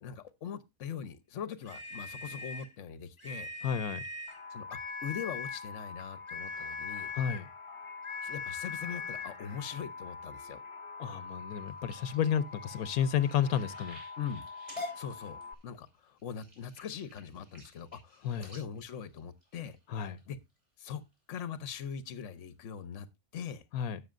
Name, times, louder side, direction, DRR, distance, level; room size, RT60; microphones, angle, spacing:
voice 1, 0.0-3.5 4.5-7.1 8.2-10.6 14.2-14.4 14.9-19.8 20.3-20.4 20.8-21.0 21.3-23.1 23.3-23.6, left 7 dB, 60° left, 1.2 m, -41 dB
sound 1, 1.6-2.7 3.2-4.4 4.7-5.7 6.3-7.5 8.0-9.4, left 4 dB, 20° left, 1.4 m, -40 dB
voice 2, 3.6-4.0 7.1-7.5 11.0-14.0 18.2-18.5 19.9-20.2 23.7-24.0, left 8 dB, 85° left, 1.2 m, -31 dB
sound 2, 4.3-15.5, left 4 dB, 40° left, 1.4 m, -46 dB
sound 3, 11.5-20.2 20.8-21.1 21.6-21.9 22.4-22.5 22.8-22.9, left 2 dB, 20° right, 6.6 m, -49 dB
18.0 x 6.5 x 2.5 m
omnidirectional pair, 1.5 m